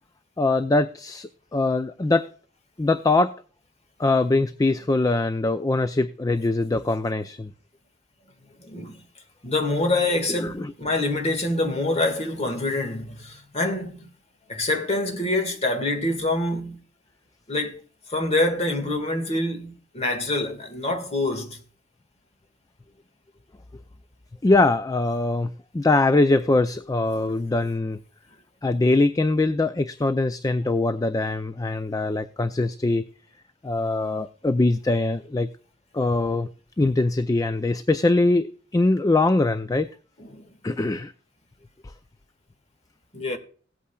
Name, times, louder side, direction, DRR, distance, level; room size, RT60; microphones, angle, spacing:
voice 1, 0.4-2.3 2.8-3.3 4.0-7.5 10.4-10.7 24.4-28.0 28.6-33.0 33.6-35.5 35.9-36.5 36.8-39.9 40.6-41.1, left 2 dB, 20° left, 0.4 m, -22 dB
voice 2, 8.6-9.1 9.4-14.1 14.5-16.8 17.5-17.8 18.1-21.6 40.2-40.5 43.1-43.4, left 2 dB, 35° left, 1.7 m, -26 dB
17.5 x 8.5 x 2.3 m
head